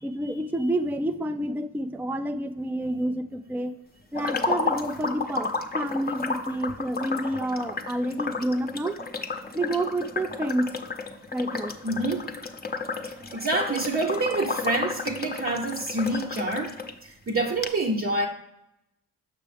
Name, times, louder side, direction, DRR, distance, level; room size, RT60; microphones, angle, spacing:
voice 1, 0.0-3.7 4.1-5.5 5.7-8.9 9.5-10.7 11.3-11.7, right 1 dB, 5° right, 9 dB, 0.4 m, -29 dB
sound 1, 4.1-16.9 17.3-17.4 17.6-17.7, left 4 dB, 25° left, 0.7 m, -32 dB
voice 2, 11.8-12.3 13.0-16.8 17.0-18.3, right 2 dB, 35° right, -2 dB, 0.8 m, -27 dB
6.9 x 5.9 x 3.4 m, 0.86 s
supercardioid pair, 60°, 39 cm